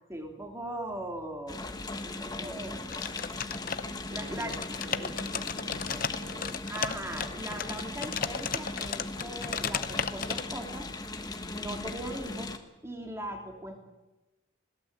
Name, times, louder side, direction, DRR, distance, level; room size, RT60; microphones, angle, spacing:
voice 1, 0.1-1.6 2.0-2.9 4.1-4.5 4.9-5.1 6.7-10.9 11.5-12.5 12.8-13.8, right 1 dB, 15° right, 2 dB, 3.0 m, -39 dB
sound 1, 1.5-12.6, left 2 dB, 20° left, 1.4 m, -38 dB
sound 2, 2.9-4.1 4.4-10.4, left 7 dB, 45° left, 0.8 m, -34 dB
voice 2, 3.8-6.6, right 1 dB, 60° right, 4 dB, 2.7 m, -47 dB
21.5 x 17.5 x 8.1 m, 1.1 s
head